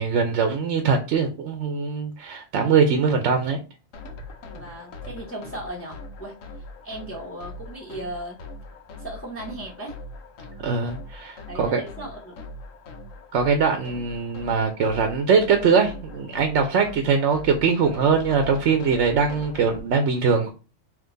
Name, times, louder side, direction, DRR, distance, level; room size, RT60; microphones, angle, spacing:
voice 1, 0.0-3.6 10.6-11.8 13.3-20.5, right 5 dB, 65° right, 0.9 m, -22 dB
sound 1, 3.9-19.8, left 2 dB, 90° left, 1.2 m, -41 dB
voice 2, 4.5-6.4 6.8-8.4 9.0-10.0 11.5-12.4 16.8-16.9, right 1 dB, 15° left, 0.7 m, -37 dB
3.7 x 2.8 x 3.8 m
omnidirectional pair, 1.3 m